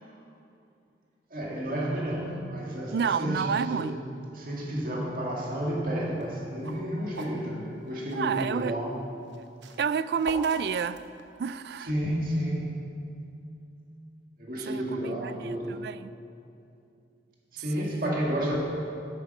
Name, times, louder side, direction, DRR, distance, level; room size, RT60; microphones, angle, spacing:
voice 1, 1.3-3.9 4.3-8.9 11.9-12.8 14.4-15.8 17.5-18.6, right 1 dB, 50° right, -3 dB, 2.1 m, -31 dB
voice 2, 2.9-4.0 8.1-8.8 9.8-11.0 11.4-11.9 14.6-14.8 15.2-16.1 17.8-18.2, right 6 dB, 65° right, 15 dB, 0.3 m, -29 dB
sound 1, 6.1-8.3 9.2-11.6, right 3 dB, 90° right, 0.9 m, -42 dB
11.0 x 8.6 x 5.4 m, 2.6 s
head